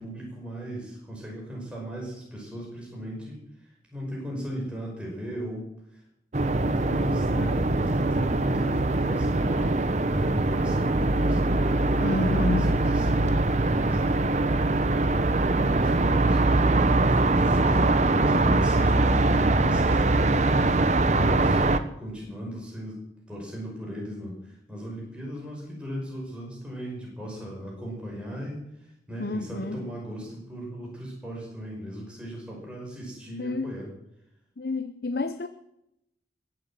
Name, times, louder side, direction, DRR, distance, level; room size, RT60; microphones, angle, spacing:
voice 1, 0.0-3.4 3.9-5.7 6.3-9.8 10.1-14.6 15.5-20.7 21.1-21.6 22.0-23.0 23.3-28.6 29.1-33.9, right 1 dB, 5° right, -3 dB, 5.5 m, -37 dB
sound 1, 6.3-21.8, right 2 dB, 40° right, 0.8 m, -22 dB
voice 2, 12.0-12.7 29.2-29.8 33.4-33.7 34.6-35.5, left 2 dB, 55° left, 9 dB, 0.7 m, -29 dB
22.0 x 7.8 x 7.6 m, 0.81 s
head